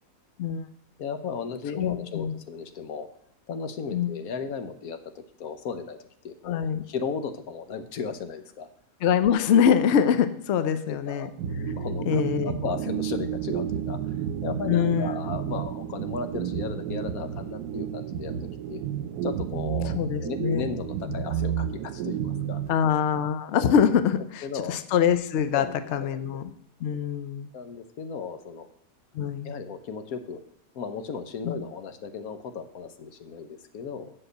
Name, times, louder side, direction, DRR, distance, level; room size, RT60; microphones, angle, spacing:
voice 1, 1.0-3.1 3.5-6.6 6.9-8.7 10.6-11.3 11.8-14.2 14.4-18.4 18.7-18.8 19.2-20.0 20.2-22.6 24.4-24.8 25.5-26.2 27.5-28.7 29.4-30.4 30.7-34.1, left 6 dB, 85° left, 9 dB, 1.3 m, -35 dB
voice 2, 1.7-2.3 3.9-4.1 6.4-6.8 9.0-11.3 12.1-12.6 14.7-15.1 19.9-20.6 21.1-21.2 22.7-24.4 24.7-25.7 25.9-26.5 26.8-27.5 29.1-29.5 31.4-31.5, left 8 dB, 60° left, 11 dB, 0.9 m, -24 dB
sound 1, 11.4-23.3, right 8 dB, 85° right, 1.1 m, -31 dB
7.8 x 6.0 x 7.8 m, 0.73 s
omnidirectional pair, 1.5 m